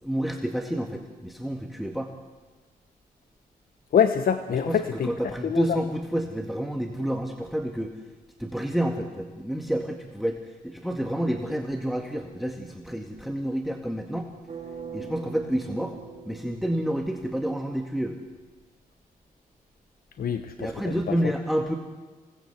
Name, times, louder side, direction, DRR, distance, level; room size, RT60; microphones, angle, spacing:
voice 1, 0.0-2.1 4.5-8.0 8.4-14.3 14.9-16.0 16.3-18.2 20.6-21.7, equal, ahead, 4 dB, 2.0 m, -29 dB
voice 2, 3.9-5.1 5.4-5.6 20.2-21.0, left 8 dB, 70° left, 9 dB, 1.2 m, -25 dB
sound 1, 14.5-17.5, right 5 dB, 45° right, 4.0 m, -42 dB
26.5 x 18.5 x 8.2 m, 1.3 s
cardioid pair, 90°, 16 cm